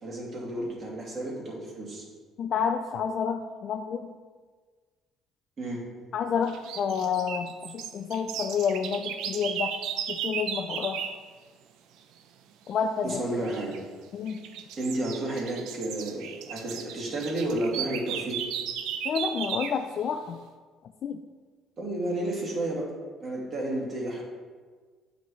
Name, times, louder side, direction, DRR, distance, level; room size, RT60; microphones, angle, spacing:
voice 1, 0.0-2.1 5.6-5.8 13.0-13.8 14.8-18.4 21.8-22.9 23.2-24.2, right 1 dB, 40° right, -3 dB, 2.3 m, -31 dB
voice 2, 2.4-4.2 6.1-9.8 10.1-11.1 12.7-13.2 14.1-14.5 19.0-20.4 21.0-21.2, left 6 dB, 55° left, 5 dB, 0.4 m, -29 dB
sound 1, 6.5-11.2 13.4-13.8 14.3-19.8, right 8 dB, 80° right, 0.5 m, -35 dB
9.2 x 6.1 x 3.2 m, 1.5 s
cardioid pair, 110°, 0 cm